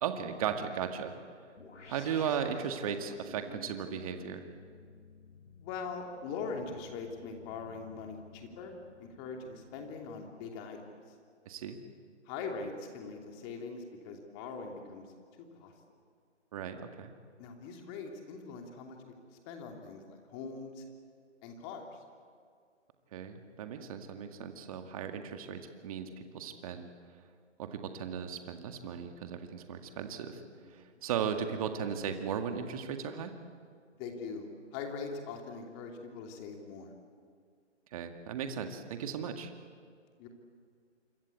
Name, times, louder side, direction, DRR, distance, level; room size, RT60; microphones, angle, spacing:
voice 1, 0.0-1.1 1.9-4.4 11.5-11.8 16.5-17.1 23.1-26.9 27.6-30.4 30.7-33.3 37.9-39.5, right 7 dB, 30° right, 6 dB, 1.9 m, -36 dB
sound 1, 1.6-10.4, left 3 dB, 75° left, 3.3 m, -54 dB
voice 2, 5.6-8.7 9.0-10.9 12.3-15.0 15.6-15.7 17.4-19.0 19.5-20.8 21.4-21.8 30.6-31.1 34.0-36.9 40.2-40.3, left 5 dB, 20° left, 3 dB, 2.9 m, -42 dB
27.0 x 26.0 x 8.4 m, 2.1 s
figure-of-eight pair, 150°, 36 cm